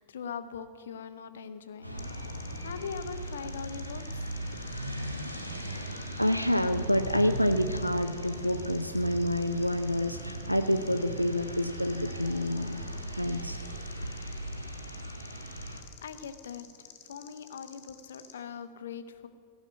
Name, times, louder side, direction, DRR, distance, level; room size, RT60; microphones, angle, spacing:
voice 1, 0.0-2.1 2.6-4.3 15.4-15.5 16.0-16.7 17.0-19.3, left 6 dB, 65° left, 11 dB, 0.8 m, -41 dB
sound 1, 1.8-15.8, right 1 dB, 85° right, 1.3 m, -38 dB
sound 2, 2.0-18.3, left 9 dB, 50° left, 1.5 m, -53 dB
voice 2, 6.2-12.8 13.1-13.6 14.0-14.1, left 1 dB, 90° left, 7 dB, 0.5 m, -28 dB
15.0 x 6.3 x 9.6 m, 2.2 s
figure-of-eight pair, 90°, 0 cm